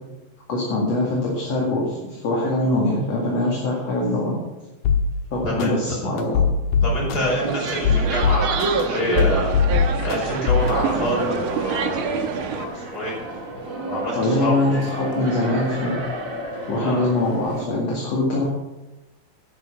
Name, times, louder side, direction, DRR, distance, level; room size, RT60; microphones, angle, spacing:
voice 1, 0.5-4.4 5.3-6.4 14.1-16.0 16.7-18.4, left 2 dB, 50° left, -3 dB, 3.1 m, -23 dB
sound 1, 4.8-5.0 5.6-5.7 6.2-7.2 7.7-8.8 9.2-10.2 10.5-10.7, left 7 dB, 80° left, 2.8 m, -19 dB
voice 2, 6.8-9.5 10.0-12.1 12.5-13.1 13.8-14.8 16.8-17.0, equal, 25° left, -3 dB, 5.4 m, -27 dB
sound 2, 7.2-12.6, right 5 dB, 70° right, 1.2 m, -26 dB
sound 3, 10.6-17.7, right 1 dB, 30° right, 1.6 m, -32 dB
11.0 x 11.0 x 5.8 m, 1.0 s
omnidirectional pair, 3.9 m